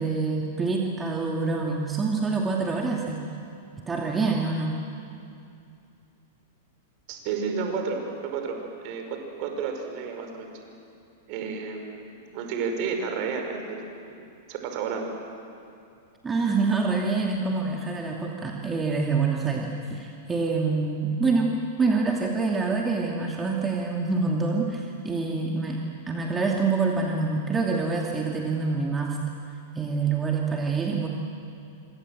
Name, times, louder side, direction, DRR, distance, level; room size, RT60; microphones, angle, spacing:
voice 1, 0.0-3.2 3.9-4.8 16.2-21.5 21.8-29.2 29.7-31.1, right 4 dB, 15° right, -1 dB, 2.7 m, -26 dB
voice 2, 7.1-8.6 8.8-10.6 11.3-13.8 14.5-15.1, right 5 dB, 45° right, 4 dB, 5.6 m, -31 dB
27.0 x 26.0 x 7.8 m, 2.6 s
figure-of-eight pair, 100°, 0 cm